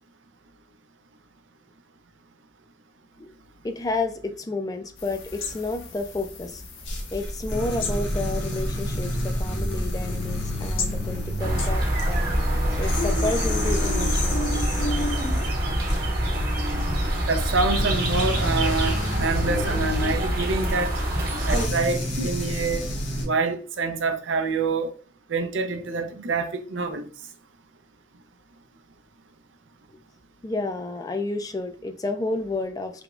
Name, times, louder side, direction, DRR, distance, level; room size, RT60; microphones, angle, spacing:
voice 1, 3.6-6.6 7.1-14.4 30.4-33.0, left 2 dB, 20° left, 0.3 m, -31 dB
sound 1, 5.0-13.1, left 5 dB, 90° left, 0.7 m, -39 dB
sound 2, 6.9-23.3, equal, 65° left, 1.0 m, -30 dB
sound 3, 11.4-21.7, equal, 55° right, 1.1 m, -25 dB
voice 2, 17.3-21.0 21.5-22.9 23.2-24.9 25.3-27.1, right 4 dB, 80° right, 0.5 m, -26 dB
3.4 x 3.0 x 2.3 m
head